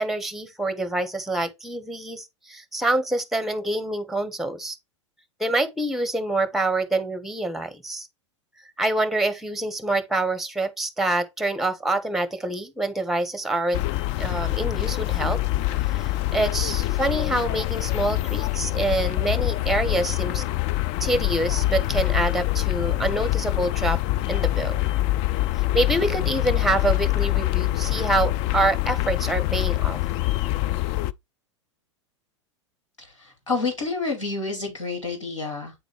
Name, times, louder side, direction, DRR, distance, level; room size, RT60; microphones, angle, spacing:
voice 1, 0.0-4.8 5.4-8.1 8.8-13.8 14.2-15.4 15.8-20.4 21.0-24.0 24.3-24.8 25.7-30.0, right 2 dB, ahead, 1.2 m, -26 dB
sound 1, 13.7-31.1, left 17 dB, 45° left, 0.4 m, -25 dB
voice 2, 33.0-35.7, left 4 dB, 90° left, 2.6 m, -29 dB
8.7 x 3.9 x 3.3 m
hypercardioid pair, 100°, 16 cm